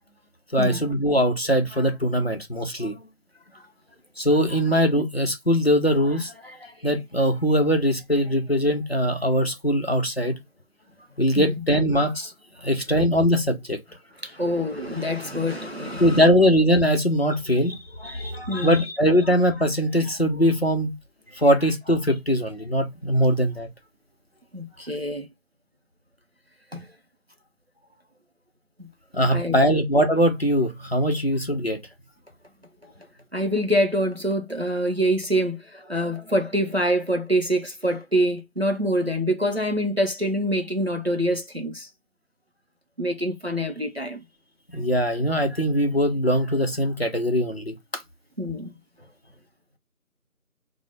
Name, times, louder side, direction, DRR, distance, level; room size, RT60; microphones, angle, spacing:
voice 1, 0.5-3.0 4.2-10.4 11.2-12.3 12.6-13.8 16.0-20.9 21.3-23.7 29.1-31.8 44.7-48.0, equal, 45° left, 0.6 m, -21 dB
voice 2, 14.2-16.3 18.0-18.8 24.5-25.3 26.7-26.9 28.8-28.9 29.3-29.7 32.8-32.9 33.3-41.9 43.0-44.2 48.4-48.7, equal, 45° right, 0.5 m, -25 dB
3.5 x 2.0 x 3.1 m
figure-of-eight pair, 170°, 44 cm